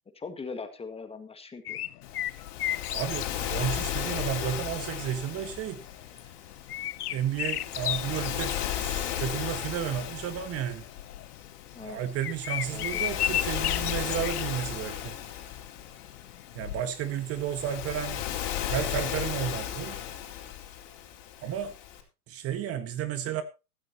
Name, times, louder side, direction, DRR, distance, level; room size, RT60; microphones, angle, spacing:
voice 1, 0.2-1.8 11.7-12.0 12.7-13.2, left 4 dB, 15° left, 1.7 m, -40 dB
sound 1, 1.7-16.8, left 13 dB, 80° left, 0.7 m, -35 dB
Waves surf, 2.0-22.0, left 10 dB, 45° left, 4.3 m, -35 dB
voice 2, 2.9-5.8 7.1-8.6 8.8-10.8 11.8-15.1 16.5-18.2 18.7-20.0 21.4-21.7 22.3-23.4, right 10 dB, 30° right, 1.5 m, -32 dB
15.5 x 14.0 x 2.9 m
hypercardioid pair, 115°, 45 cm